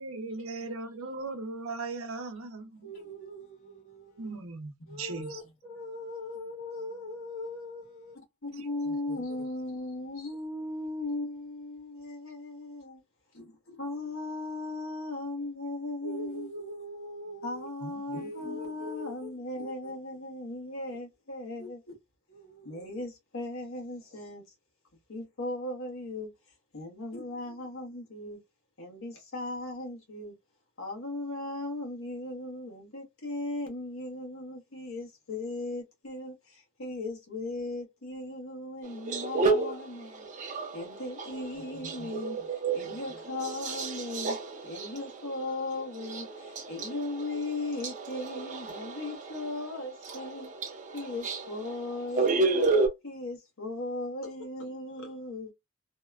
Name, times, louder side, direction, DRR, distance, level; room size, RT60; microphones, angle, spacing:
voice 1, 0.0-2.8 4.2-5.4 8.5-9.2 17.8-18.3, right 3 dB, 75° right, 0.6 m, -39 dB
voice 2, 2.8-4.4 4.9-8.1 9.1-9.2 16.0-17.7 18.1-19.3 19.6-19.9 20.8-21.0 21.6-21.7 22.3-23.0 41.7-41.8 42.8-43.0, left 1 dB, 40° left, 1.4 m, -42 dB
voice 3, 8.4-13.0 13.3-13.5 13.7-16.6 17.4-22.0 22.6-24.4 25.1-26.3 26.7-28.4 28.8-30.3 30.8-40.3 40.7-44.4 44.6-50.5 50.9-52.7 53.0-55.5, left 2 dB, 70° left, 1.1 m, -37 dB
sound 1, 38.8-52.9, right 3 dB, 40° right, 0.5 m, -32 dB
2.8 x 2.2 x 2.3 m
head